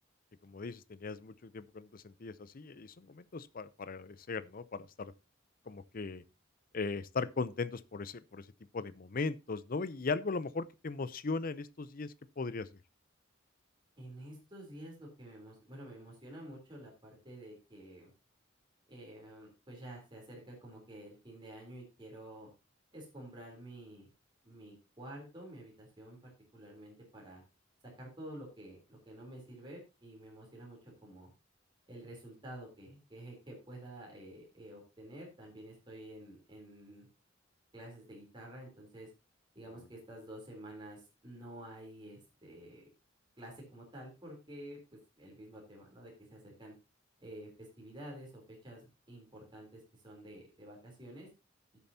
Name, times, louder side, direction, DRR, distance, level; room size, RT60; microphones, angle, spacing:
voice 1, 0.4-5.1 5.7-6.2 6.7-8.4 8.7-12.7, left 4 dB, 45° left, 0.6 m, -38 dB
voice 2, 14.0-18.1 18.9-22.5 22.9-24.1 24.4-27.4 28.0-31.3 31.9-37.1 37.7-39.1 39.5-42.8 43.4-44.8 45.2-46.7 47.2-51.3, right 1 dB, 25° right, 3.4 m, -50 dB
16.5 x 7.0 x 2.8 m
head